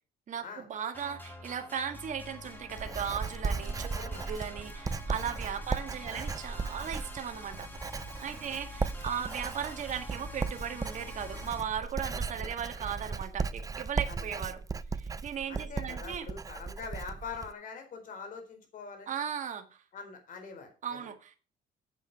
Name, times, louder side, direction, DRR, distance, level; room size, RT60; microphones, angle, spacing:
voice 1, 0.3-7.7 8.2-14.6 14.9-16.3 19.1-19.8 20.8-21.4, right 8 dB, 45° right, 1.7 m, -37 dB
sound 1, 0.9-11.6, left 2 dB, 10° left, 2.6 m, -46 dB
Writing, 2.1-17.5, right 4 dB, 20° right, 0.5 m, -36 dB
voice 2, 3.9-4.3 4.7-4.8 6.1-6.4 8.4-8.6 9.0-9.1 12.4-12.5 14.1-14.4 15.5-19.2 19.9-21.0, left 5 dB, 55° left, 4.0 m, -44 dB
8.2 x 7.7 x 5.5 m
cardioid pair, 110°, 17 cm